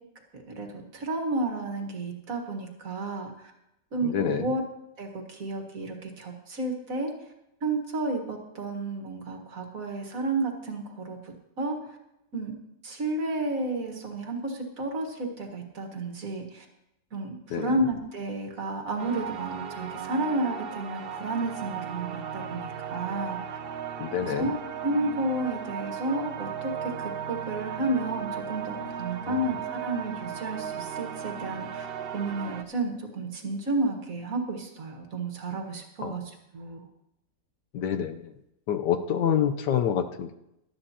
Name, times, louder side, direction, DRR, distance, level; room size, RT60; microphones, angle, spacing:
voice 1, 0.3-3.5 3.9-4.6 5.0-7.1 7.6-11.2 11.6-11.8 12.3-12.5 12.8-16.7 17.1-23.4 24.2-24.6 24.8-31.9 32.1-36.2 36.5-36.8, right 2 dB, 50° right, 3 dB, 1.9 m, -31 dB
voice 2, 4.0-4.4 17.5-17.7 24.0-24.4 36.0-36.1 37.7-38.2 38.7-40.3, left 8 dB, 80° left, 8 dB, 1.3 m, -27 dB
sound 1, 19.0-32.6, right 7 dB, 75° right, 0.5 m, -36 dB
18.5 x 12.0 x 2.9 m, 0.85 s
omnidirectional pair, 1.9 m